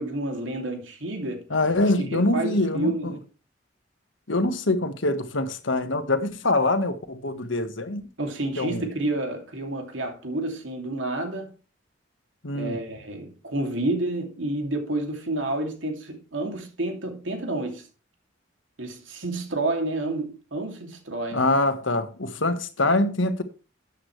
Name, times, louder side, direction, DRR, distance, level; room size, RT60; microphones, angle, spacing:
voice 1, 0.0-1.5 2.0-3.2 8.2-11.5 12.5-17.9 18.8-21.4, right 2 dB, 80° right, 2.7 m, -29 dB
voice 2, 1.5-3.1 4.3-8.0 8.6-8.8 12.4-12.8 21.3-23.4, left 2 dB, 80° left, 1.5 m, -24 dB
13.0 x 8.6 x 3.3 m
head